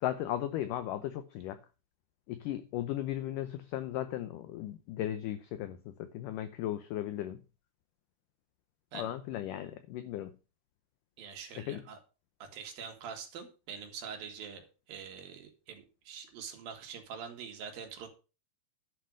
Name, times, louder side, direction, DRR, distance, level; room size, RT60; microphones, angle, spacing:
voice 1, 0.0-1.6 2.3-7.4 8.9-10.3 11.6-11.8, left 12 dB, 80° left, 1.9 m, -36 dB
voice 2, 11.2-12.0 12.4-14.6 14.9-18.1, right 6 dB, 65° right, 3.7 m, -44 dB
11.5 x 5.7 x 6.4 m
omnidirectional pair, 4.6 m